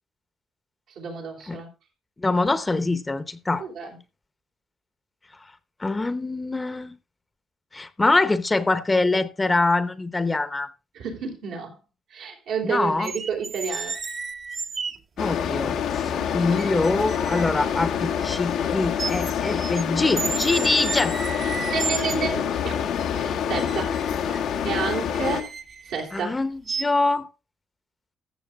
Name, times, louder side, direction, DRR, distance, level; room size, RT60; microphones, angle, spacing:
voice 1, 1.0-1.7 3.6-4.0 10.9-11.8 12.1-14.0 16.2-16.6 21.7-22.9 23.1-24.0 24.6-25.5 25.8-26.3, right 6 dB, 85° right, 3.7 m, -31 dB
voice 2, 2.2-3.7 5.8-7.0 7.7-10.7 12.6-13.1 15.2-21.3 26.1-27.3, left 3 dB, 20° left, 0.8 m, -24 dB
sound 1, 13.0-15.0 15.9-16.0 16.6-18.7 19.0-19.8 20.2-22.4 23.6-26.2 26.7-26.8, right 5 dB, 45° right, 1.0 m, -33 dB
sound 2, 15.2-25.4, left 8 dB, 85° left, 1.3 m, -26 dB
14.0 x 6.8 x 3.6 m
cardioid pair, 90°, 0 cm